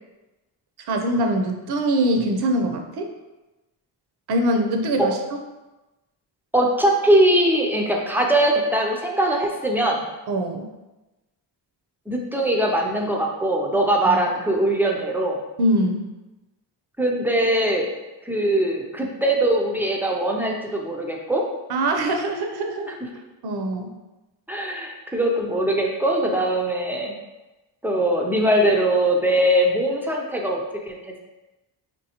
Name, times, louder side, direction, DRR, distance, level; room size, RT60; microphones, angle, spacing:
voice 1, 0.9-3.1 4.3-5.2 10.3-10.7 14.0-14.2 15.6-16.1 21.7-23.0 23.4-23.9, right 1 dB, 60° right, 4 dB, 0.6 m, -23 dB
voice 2, 6.5-10.0 12.1-15.4 17.0-17.9 18.2-21.4 24.5-27.1 27.8-30.6 30.9-31.0, right 1 dB, 5° right, 0 dB, 0.3 m, -21 dB
5.3 x 3.1 x 2.8 m, 1.1 s
wide cardioid pair, 175°, 44 cm